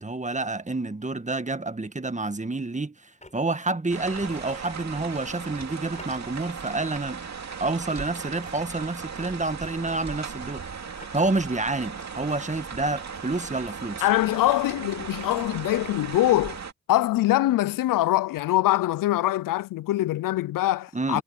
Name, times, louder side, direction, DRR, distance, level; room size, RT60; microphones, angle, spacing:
voice 1, 0.0-7.3 7.6-10.6 11.1-14.0 20.9-21.2, right 2 dB, 20° right, 1.6 m, -29 dB
sound 1, 3.2-3.7 5.9-6.7 7.3-7.5 8.7-9.1 11.0-11.2 12.9-13.5 15.2-15.6, left 2 dB, 20° left, 6.1 m, -52 dB
sound 2, 3.9-16.7, right 6 dB, 55° right, 2.6 m, -37 dB
voice 2, 14.0-16.6 16.9-21.2, left 15 dB, 85° left, 0.5 m, -23 dB
supercardioid pair, 40°, 32 cm